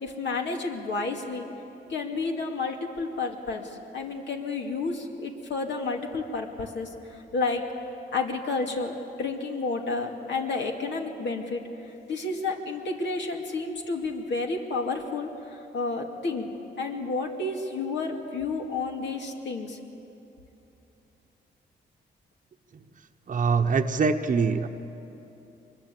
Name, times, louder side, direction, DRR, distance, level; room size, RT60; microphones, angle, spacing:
voice 1, 0.0-1.5 1.9-7.6 8.1-11.6 12.1-16.5 16.8-19.8, left 3 dB, 70° left, 1 dB, 2.5 m, -31 dB
voice 2, 23.3-24.7, right 5 dB, 45° right, 4 dB, 1.0 m, -23 dB
24.0 x 21.5 x 8.4 m, 2.9 s
cardioid pair, 100°, 19 cm